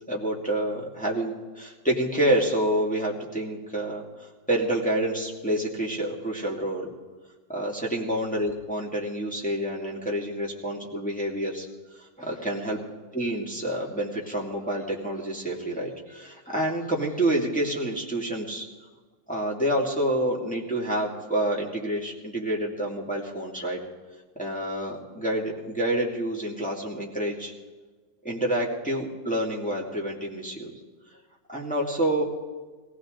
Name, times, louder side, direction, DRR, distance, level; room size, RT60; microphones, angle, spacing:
voice 1, 0.1-6.9 7.5-11.7 12.0-12.8 13.1-18.7 19.3-23.8 24.4-27.5 28.2-30.7 31.5-32.2, right 1 dB, 5° left, -3 dB, 2.3 m, -28 dB
21.5 x 16.5 x 3.9 m, 1.3 s
omnidirectional pair, 2.2 m